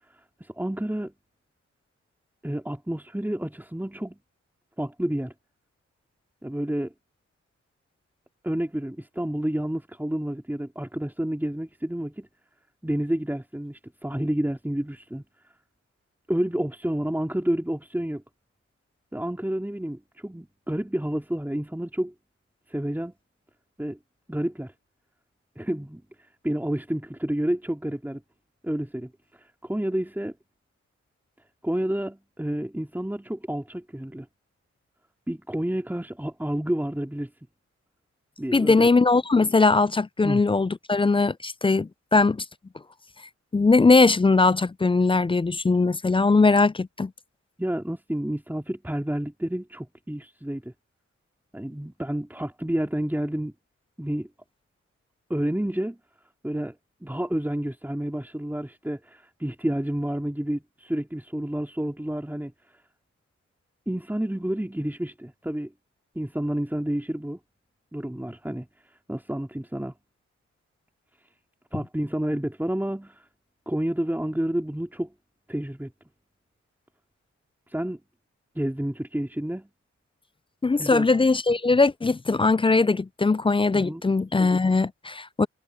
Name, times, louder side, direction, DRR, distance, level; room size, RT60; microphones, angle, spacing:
voice 1, 0.4-1.1 2.4-4.2 4.8-5.3 6.4-6.9 8.4-12.3 12.8-15.2 16.3-18.2 19.1-22.1 22.7-23.1 23.8-24.0 24.3-24.7 25.6-26.0 26.4-28.2 28.6-30.3 31.6-34.3 35.3-37.3 38.4-38.9 40.2-40.4 47.6-50.7 51.5-53.5 54.0-54.3 55.3-56.0 56.4-56.8 57.0-62.5 63.9-65.7 66.2-67.4 67.9-68.7 69.1-69.9 71.7-73.2 73.7-75.1 75.5-75.9 77.7-78.0 78.6-79.7 80.8-81.1 83.7-84.0, right 1 dB, 5° right, 3.8 m, -29 dB
voice 2, 38.5-42.4 43.5-47.1 80.6-85.5, left 3 dB, 20° left, 0.4 m, -20 dB
cardioid pair, 50°, 30 cm